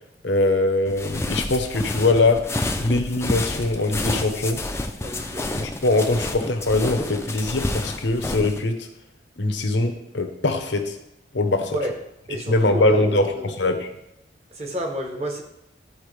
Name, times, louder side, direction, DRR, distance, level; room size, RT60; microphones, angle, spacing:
voice 1, 0.2-2.5 2.8-4.6 5.6-8.9 9.4-11.0 11.3-11.8 12.5-13.9, left 2 dB, 80° left, 5 dB, 0.9 m, -22 dB
sound 1, 0.9-8.6, left 2 dB, 15° left, 0.4 m, -29 dB
voice 2, 5.0-5.5 11.7-11.9 12.3-13.5 14.5-15.4, right 1 dB, 35° right, 2 dB, 1.1 m, -28 dB
11.5 x 4.4 x 3.2 m, 0.83 s
head